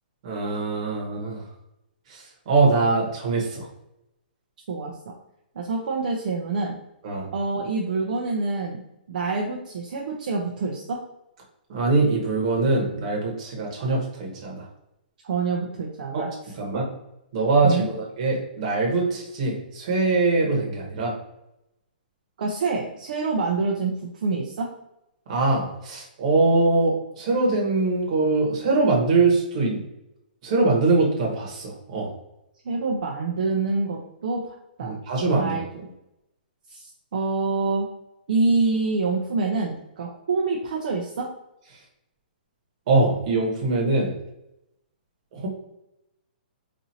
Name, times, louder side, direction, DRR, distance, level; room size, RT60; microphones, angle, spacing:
voice 1, 0.2-1.4 2.1-3.7 7.0-7.3 11.7-14.7 16.1-16.2 16.6-16.8 17.3-21.1 25.3-29.8 30.4-32.1 34.8-35.6 42.9-44.1 45.3-45.5, right 3 dB, 35° right, -1 dB, 1.1 m, -22 dB
voice 2, 4.7-5.1 5.5-6.8 7.3-8.8 9.1-11.0 15.2-16.8 17.6-17.9 22.4-23.9 24.2-24.7 32.6-34.9 35.4-35.6 36.7-37.9 38.3-41.3, right 3 dB, 55° right, -2 dB, 0.6 m, -26 dB
4.2 x 2.6 x 2.7 m, 0.86 s
hypercardioid pair, 170°, 5 cm